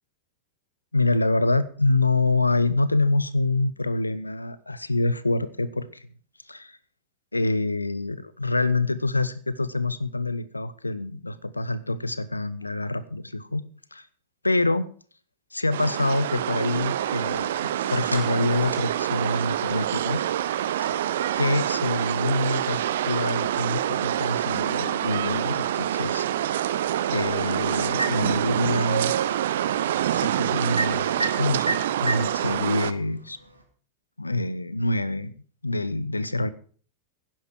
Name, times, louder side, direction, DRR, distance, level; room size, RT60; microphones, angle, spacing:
voice 1, 0.9-6.1 6.5-6.8 7.3-13.6 13.9-14.1 14.4-14.9 15.5-17.5 17.9-20.2 21.3-26.2 26.6-26.7 27.1-29.1 30.1-33.4 34.2-35.3 35.6-36.5, left 2 dB, 85° left, 16 dB, 0.9 m, -26 dB
sound 1, 15.7-32.9, right 11 dB, 60° right, 0.7 m, -26 dB
sound 2, 17.3-33.6, right 2 dB, 85° right, 2.4 m, -38 dB
16.5 x 10.5 x 4.6 m, 0.43 s
figure-of-eight pair, 90°, 0 cm